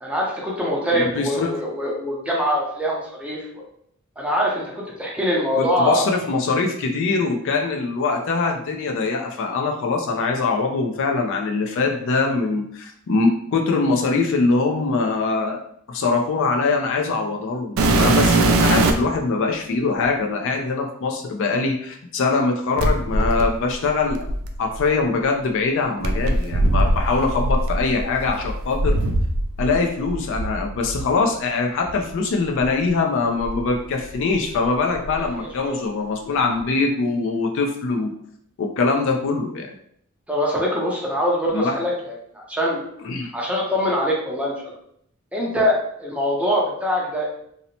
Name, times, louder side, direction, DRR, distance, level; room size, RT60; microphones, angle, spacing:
voice 1, 0.0-3.5 4.2-6.1 35.4-35.8 40.3-42.8 43.3-44.7 45.3-47.3, equal, 5° right, -3 dB, 0.5 m, -23 dB
voice 2, 0.9-1.5 5.6-15.6 15.9-24.2 24.6-29.0 29.6-38.1 38.6-39.7 41.5-41.8 43.0-43.3, left 3 dB, 60° left, 2 dB, 0.4 m, -23 dB
sound 1, 17.8-19.2 20.0-20.1 22.8-24.9 26.0-29.8 30.0-31.1 31.9-32.0 32.6-32.7 33.4-34.5 34.7-35.3 36.6-36.7, right 2 dB, 70° right, 0.4 m, -21 dB
2.6 x 2.0 x 2.8 m, 0.69 s
head